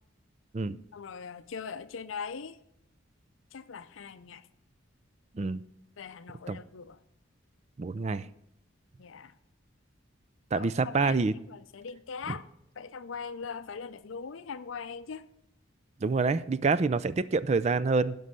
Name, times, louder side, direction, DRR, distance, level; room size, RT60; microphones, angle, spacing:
voice 1, 0.9-2.6 3.5-4.5 6.0-7.0 9.0-9.3 10.5-12.4 12.8-15.3, left 6 dB, 75° left, 0.5 m, -41 dB
voice 2, 7.8-8.3 10.5-11.3 12.3-12.4 16.0-18.2, right 4 dB, 35° right, 0.4 m, -27 dB
11.5 x 5.4 x 6.4 m
head